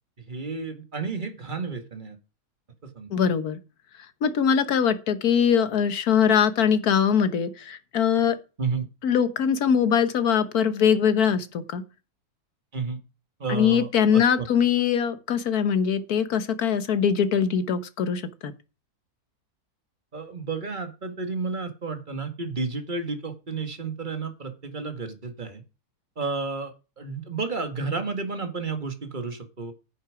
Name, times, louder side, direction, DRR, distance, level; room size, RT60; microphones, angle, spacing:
voice 1, 0.3-2.2 2.8-3.1 8.6-8.8 12.7-13.0 13.4-14.5 20.1-25.6 26.2-29.7, right 4 dB, 30° right, 2.0 m, -31 dB
voice 2, 3.1-3.6 4.2-8.4 9.0-11.8 13.5-18.5, left 7 dB, 75° left, 1.7 m, -22 dB
10.0 x 8.8 x 4.9 m
omnidirectional pair, 1.6 m